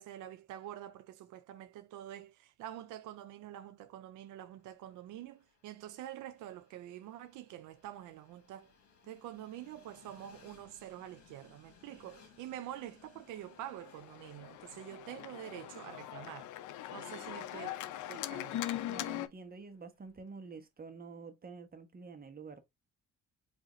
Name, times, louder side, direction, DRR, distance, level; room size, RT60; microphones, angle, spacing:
voice 1, 0.0-8.7 9.0-16.5 16.9-17.8 18.1-18.7, right 12 dB, 90° right, 0.5 m, -47 dB
Train, 4.4-20.4, left 6 dB, 55° left, 1.9 m, -65 dB
Organ, 13.4-19.3, left 13 dB, 80° left, 0.5 m, -41 dB
voice 2, 18.9-22.6, right 4 dB, 30° right, 1.0 m, -48 dB
4.9 x 2.7 x 3.0 m
cardioid pair, 90°, 30 cm